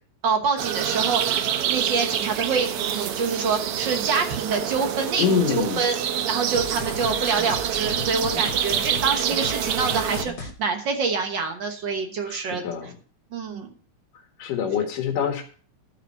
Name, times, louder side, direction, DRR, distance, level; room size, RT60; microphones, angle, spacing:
voice 1, 0.2-1.4 1.7-6.0 6.3-12.6 13.3-13.7, right 5 dB, 55° right, 5 dB, 1.4 m, -26 dB
sound 1, 0.6-10.2, right 9 dB, 85° right, 1.2 m, -26 dB
voice 2, 5.2-5.9 12.3-12.9 14.4-15.4, left 7 dB, 85° left, 4 dB, 3.2 m, -25 dB
sound 2, 6.5-10.5, left 4 dB, 45° left, 1.6 m, -36 dB
12.0 x 5.9 x 5.5 m, 0.42 s
omnidirectional pair, 3.6 m